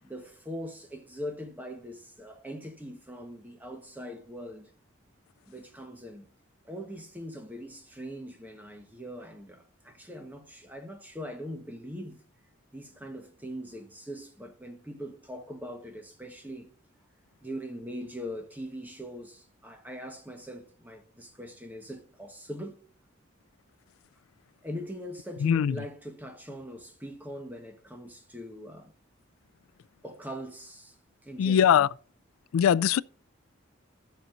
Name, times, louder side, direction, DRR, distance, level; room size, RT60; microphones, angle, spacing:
voice 1, 0.0-4.7 5.5-6.3 6.6-12.2 12.7-16.7 17.4-22.8 24.6-28.9 30.0-30.9 31.2-31.9, equal, 10° right, 1.1 m, -41 dB
voice 2, 25.4-25.8 31.4-31.9 32.5-33.0, left 8 dB, 85° left, 0.3 m, -21 dB
13.5 x 7.0 x 2.6 m
head